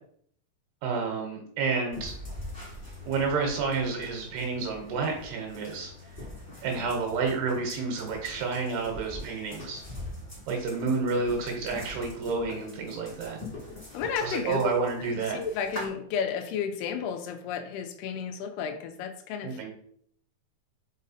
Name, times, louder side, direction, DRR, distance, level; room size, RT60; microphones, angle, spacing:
voice 1, 0.8-2.1 3.1-5.9 6.6-9.8 10.5-13.4 14.2-15.4 19.4-19.7, right 4 dB, 80° right, 1 dB, 3.3 m, -30 dB
sound 1, 1.9-15.9, left 1 dB, 5° left, 2.3 m, -43 dB
voice 2, 13.9-14.6 15.3-19.6, left 7 dB, 80° left, 6 dB, 2.7 m, -32 dB
5.7 x 5.3 x 4.2 m, 0.63 s
omnidirectional pair, 4.8 m